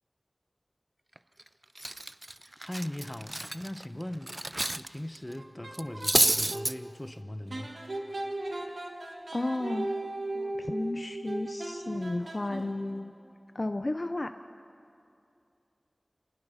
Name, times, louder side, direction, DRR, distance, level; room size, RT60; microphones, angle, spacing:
Cutlery silverware, 1.2-1.4 1.8-4.9 5.1-5.3 5.7-6.7, right 1 dB, 30° right, 0.5 m, -29 dB
voice 1, 2.6-4.4 4.7-7.8, left 1 dB, 20° left, 9 dB, 1.0 m, -39 dB
sound 1, 5.3-6.7 7.5-13.0, right 2 dB, 80° right, 2.0 m, -37 dB
voice 2, 9.3-9.9 10.3-13.1 13.5-14.3, left 2 dB, 45° left, 8 dB, 0.6 m, -33 dB
28.5 x 19.5 x 5.8 m, 2.6 s
wide cardioid pair, 55°, 0 cm